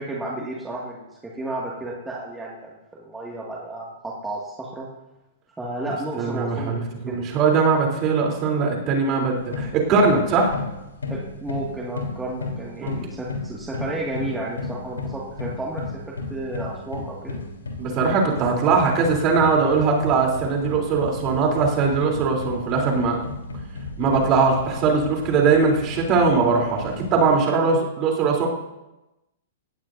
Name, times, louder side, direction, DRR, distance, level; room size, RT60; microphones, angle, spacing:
voice 1, 0.0-4.9 5.6-6.7 7.1-7.2 11.1-15.8 16.1-17.4, right 2 dB, 10° right, -4 dB, 2.1 m, -32 dB
voice 2, 6.1-10.5 12.8-13.0 17.8-23.2 24.0-28.5, right 4 dB, 35° right, 0 dB, 3.5 m, -20 dB
sound 1, 9.3-27.4, left 3 dB, 80° left, 3.5 m, -34 dB
19.0 x 15.0 x 2.7 m, 0.98 s
figure-of-eight pair, 110°, 0 cm